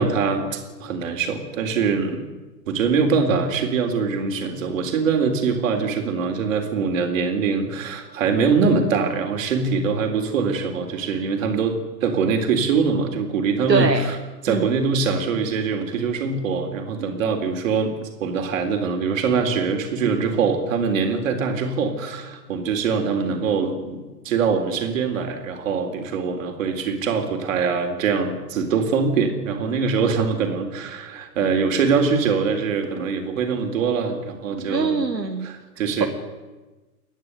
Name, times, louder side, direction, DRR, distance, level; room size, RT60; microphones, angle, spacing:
voice 1, 0.0-2.2 2.7-14.2 14.4-17.9 18.2-35.0 35.4-36.1, right 5 dB, 50° right, 5 dB, 3.8 m, -23 dB
voice 2, 13.7-14.1 14.5-14.7 34.7-35.5, right 4 dB, 85° right, 5 dB, 1.6 m, -22 dB
29.0 x 11.0 x 8.3 m, 1.2 s
figure-of-eight pair, 105°, 49 cm